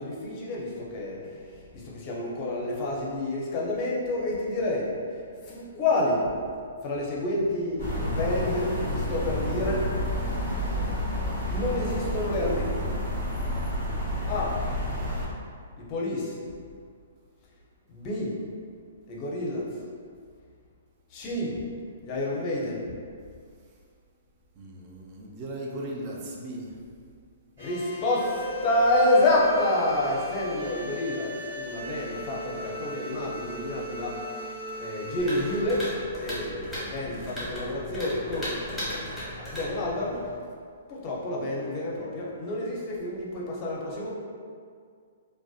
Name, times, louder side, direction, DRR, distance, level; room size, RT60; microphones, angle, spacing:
voice 1, 0.0-1.4 1.7-4.9 5.4-6.3 6.8-9.9 11.5-12.8 14.3-14.6 15.9-16.3 17.9-18.4 19.1-19.7 21.1-21.6 22.0-22.8 27.6-34.2 34.8-40.2 40.9-44.1, left 1 dB, 35° left, -4 dB, 0.5 m, -28 dB
sound 1, 7.8-15.3, equal, 55° right, 1.0 m, -29 dB
voice 2, 24.6-26.7, right 1 dB, 35° right, -2 dB, 0.4 m, -37 dB
sound 2, 27.6-37.5, equal, 70° right, 1.4 m, -38 dB
sound 3, 35.2-40.4, equal, 5° left, 0.9 m, -37 dB
2.5 x 2.1 x 2.3 m, 2.1 s
hypercardioid pair, 135°, 0 cm